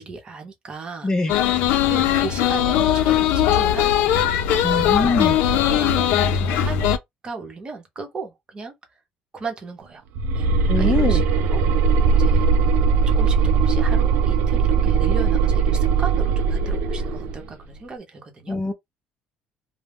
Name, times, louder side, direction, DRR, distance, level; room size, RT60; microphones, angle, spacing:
voice 1, 0.0-1.1 1.9-4.2 4.5-5.2 5.7-7.0 7.2-8.8 9.3-10.0 10.3-10.5 10.8-11.2 11.5-12.5 13.1-18.6, right 4 dB, 30° right, 0.8 m, -36 dB
voice 2, 1.0-1.3 4.6-5.4 10.7-11.2 18.5-18.7, left 3 dB, 25° left, 0.6 m, -22 dB
sound 1, 1.3-7.0, left 10 dB, 85° left, 0.4 m, -19 dB
sound 2, 10.1-17.4, right 5 dB, 75° right, 0.4 m, -19 dB
2.3 x 2.1 x 3.4 m
cardioid pair, 120°, 3 cm